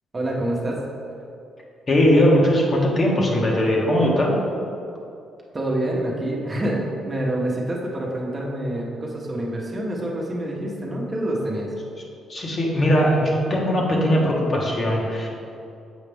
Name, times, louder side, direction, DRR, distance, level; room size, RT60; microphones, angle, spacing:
voice 1, 0.1-0.8 5.5-11.7, right 1 dB, 30° right, -3 dB, 1.2 m, -27 dB
voice 2, 1.9-4.3 12.3-15.3, equal, 40° left, -2 dB, 1.2 m, -19 dB
7.2 x 4.8 x 3.5 m, 2.6 s
cardioid pair, 90°, 0 cm